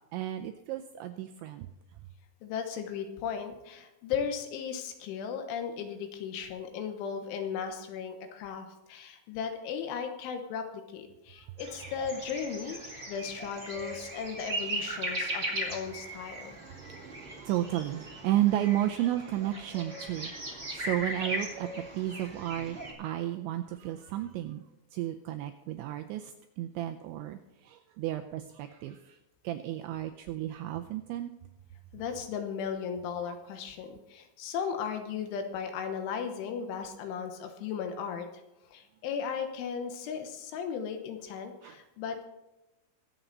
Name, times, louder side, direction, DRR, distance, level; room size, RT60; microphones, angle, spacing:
voice 1, 0.1-1.7 16.6-24.6 24.9-29.2 29.4-31.3 41.6-41.8, right 13 dB, 90° right, 6 dB, 2.6 m, -33 dB
voice 2, 2.4-12.8 13.1-16.6 31.9-38.3 38.7-42.3, left 7 dB, 75° left, 6 dB, 3.4 m, -36 dB
sound 1, 11.6-22.9, right 1 dB, 40° right, 0.8 m, -38 dB
22.5 x 7.9 x 4.0 m, 0.96 s
omnidirectional pair, 5.9 m